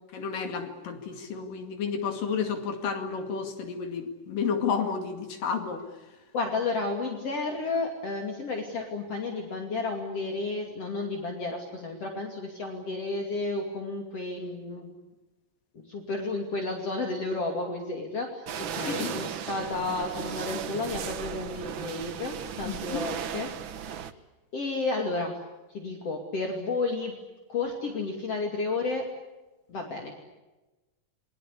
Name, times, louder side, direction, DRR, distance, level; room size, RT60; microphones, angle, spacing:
voice 1, 0.1-5.8 18.8-19.1 22.6-23.0, left 6 dB, 80° left, 5 dB, 4.0 m, -31 dB
voice 2, 6.3-14.9 15.7-24.1 24.5-25.4 25.7-27.2 27.5-29.0 29.7-30.1, left 3 dB, 50° left, 2 dB, 3.5 m, -32 dB
sound 1, 18.5-24.1, right 8 dB, 80° right, 1.0 m, -36 dB
28.0 x 23.0 x 8.4 m, 1.1 s
omnidirectional pair, 3.8 m